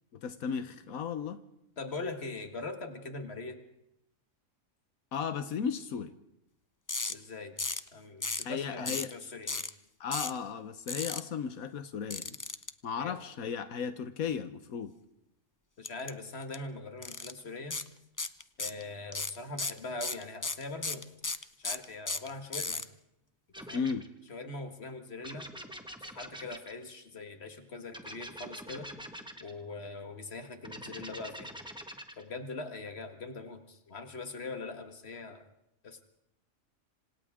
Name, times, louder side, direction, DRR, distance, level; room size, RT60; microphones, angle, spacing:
voice 1, 0.1-1.4 5.1-6.1 8.4-9.1 10.0-12.4 12.8-14.9 23.7-24.1, left 6 dB, 85° left, 10 dB, 1.4 m, -35 dB
voice 2, 1.8-3.6 7.1-7.6 7.9-9.7 13.0-13.2 15.8-17.8 18.6-21.1 21.6-22.8 23.6-23.9 24.3-25.5 26.0-28.9 29.4-31.5 32.2-35.4 35.8-36.0, left 3 dB, 50° left, 6 dB, 2.0 m, -42 dB
sound 1, 6.9-7.1 7.6-7.9 8.2-8.5 8.9-9.1 9.5-9.7 10.1-10.4 10.9-11.2 12.1-12.7 15.8-16.1 16.4-16.6 17.0-17.3 17.7-17.9 18.2-18.8 19.1-22.8, left 3 dB, 20° left, 0.5 m, -34 dB
sound 2, 23.5-24.1 25.2-26.8 27.9-29.5 30.6-32.2, equal, 5° right, 1.6 m, -45 dB
27.0 x 26.5 x 3.7 m, 0.83 s
omnidirectional pair, 1.4 m